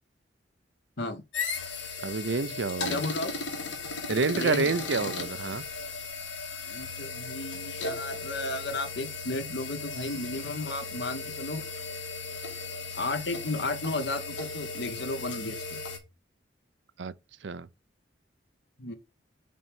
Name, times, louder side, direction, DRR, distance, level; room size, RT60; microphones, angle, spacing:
sound 1, 1.3-16.0, left 4 dB, 80° left, 2.2 m, -36 dB
voice 1, 2.0-3.0 4.1-5.6 17.0-17.1 17.4-17.7, right 4 dB, 70° right, 0.6 m, -28 dB
voice 2, 2.9-3.3 4.3-5.1 6.6-11.6 12.9-15.8 18.8-19.0, left 2 dB, 60° left, 1.3 m, -34 dB
5.3 x 4.5 x 5.2 m
head